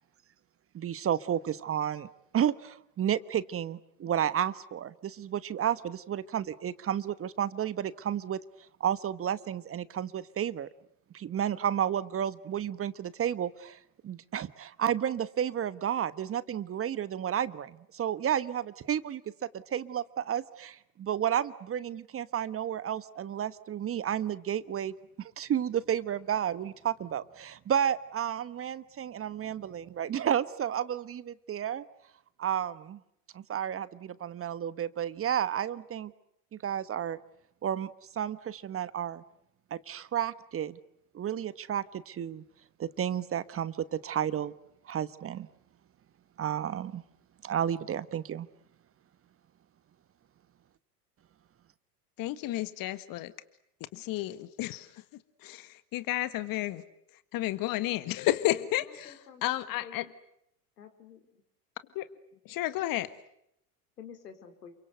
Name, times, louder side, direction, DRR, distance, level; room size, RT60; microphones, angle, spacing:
voice 1, 0.7-2.1 2.3-8.4 8.8-10.7 11.1-31.8 32.4-33.0 33.3-36.1 36.5-37.2 37.6-39.2 39.7-40.8 41.1-42.4 42.8-44.5 44.9-45.5 46.4-47.0 47.4-48.5, right 9 dB, 30° right, 16 dB, 1.2 m, -32 dB
voice 2, 52.2-53.3 53.9-56.8 57.3-59.1 59.4-60.1 62.0-62.1 62.5-63.1, left 15 dB, 45° left, 13 dB, 1.6 m, -32 dB
voice 3, 58.4-59.4 59.8-60.1 60.8-61.4 64.0-64.8, left 7 dB, 90° left, 8 dB, 4.3 m, -49 dB
28.5 x 24.5 x 7.9 m, 0.77 s
hypercardioid pair, 95°, 46 cm